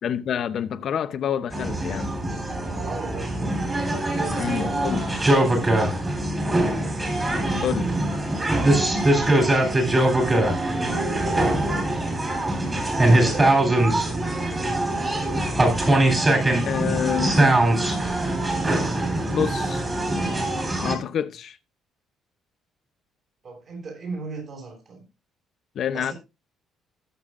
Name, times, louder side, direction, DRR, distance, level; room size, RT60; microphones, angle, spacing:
voice 1, 0.0-2.1 4.4-5.1 7.6-7.9 16.7-17.7 19.3-19.9 20.8-21.6 25.7-26.1, left 9 dB, 50° left, 0.7 m, -27 dB
sound 1, 1.5-20.9, right 1 dB, 20° right, 3.4 m, -22 dB
voice 2, 2.8-3.5 4.1-6.2 7.3-7.8 9.1-10.1 10.8-11.9 13.0-14.0 16.6-17.0 23.4-25.0 25.9-26.1, right 3 dB, 40° right, 6.2 m, -37 dB
19.5 x 7.0 x 2.5 m
cardioid pair, 145°, 0 cm